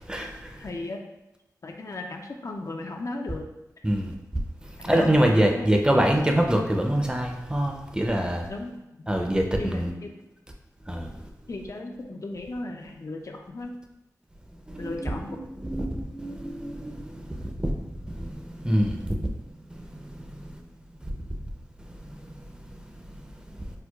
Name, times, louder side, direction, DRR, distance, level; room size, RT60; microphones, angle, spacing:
voice 1, 0.1-0.5 3.8-4.1 4.8-8.5 9.1-9.9 10.9-11.1 14.7-19.3 19.7-20.5 22.0-22.1, right 1 dB, 15° right, 2 dB, 0.5 m, -25 dB
voice 2, 0.6-1.0 1.6-3.4 4.9-5.1 5.5-5.7 8.5-8.8 9.6-10.1 11.5-13.7 14.8-15.4, left 2 dB, 50° left, 2 dB, 0.4 m, -36 dB
4.4 x 2.1 x 2.3 m, 0.97 s
cardioid pair, 40°, 7 cm